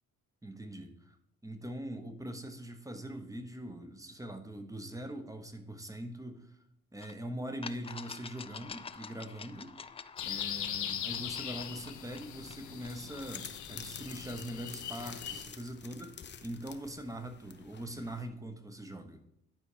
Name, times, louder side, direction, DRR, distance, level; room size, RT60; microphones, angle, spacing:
voice 1, 0.4-1.2 1.4-6.6 6.9-9.8 10.2-19.2, right 1 dB, 10° right, 7 dB, 1.2 m, -42 dB
sound 1, 7.0-7.1 7.6-13.3, left 5 dB, 20° left, 0.4 m, -48 dB
sound 2, 10.2-15.4, left 10 dB, 70° left, 0.9 m, -40 dB
sound 3, 13.2-18.2, left 7 dB, 35° left, 0.8 m, -49 dB
11.0 x 4.2 x 5.0 m, 0.75 s
cardioid pair, 90°, 30 cm